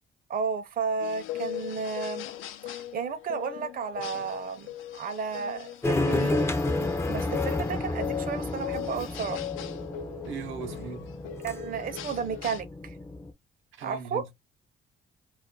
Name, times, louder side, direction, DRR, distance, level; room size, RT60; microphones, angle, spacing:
voice 1, 0.3-2.3 2.6-6.5 7.1-9.5 11.4-13.0 13.8-14.2, right 5 dB, 45° right, 0.5 m, -33 dB
sound 1, 1.0-12.6, left 11 dB, 85° left, 0.4 m, -39 dB
sound 2, 5.8-13.3, left 2 dB, 15° left, 0.4 m, -31 dB
voice 2, 10.2-11.1 13.7-14.3, right 6 dB, 85° right, 0.6 m, -38 dB
2.3 x 2.1 x 3.7 m
cardioid pair, 90°, 20 cm